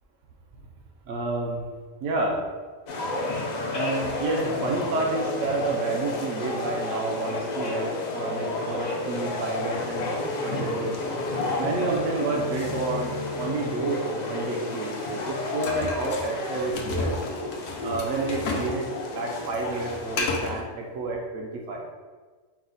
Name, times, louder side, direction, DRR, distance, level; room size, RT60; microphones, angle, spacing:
voice 1, 1.1-1.6 2.0-2.4 3.7-10.2 10.4-11.1 11.6-14.0 14.3-17.1 17.8-21.8, right 3 dB, 75° right, -1 dB, 0.9 m, -30 dB
sound 1, 2.9-20.3, left 2 dB, 60° left, 0.4 m, -31 dB
sound 2, 12.4-15.6, left 1 dB, 40° right, 0.6 m, -40 dB
sound 3, 15.6-18.8 19.0-20.6, left 3 dB, 75° left, 0.9 m, -32 dB
4.8 x 2.1 x 3.9 m, 1.4 s
omnidirectional pair, 1.3 m